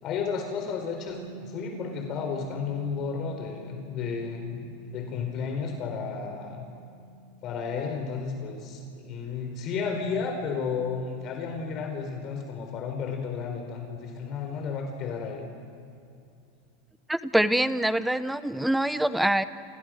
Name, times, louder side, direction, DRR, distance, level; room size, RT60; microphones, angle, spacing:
voice 1, 0.0-6.7 7.4-15.5, left 5 dB, 45° left, 3 dB, 4.4 m, -33 dB
Bass guitar, 1.1-7.3, right 3 dB, 45° right, 4.5 m, -47 dB
voice 2, 17.1-19.5, right 1 dB, 5° right, 13 dB, 1.1 m, -24 dB
29.5 x 29.0 x 6.5 m, 2.5 s
hypercardioid pair, 110°, 0 cm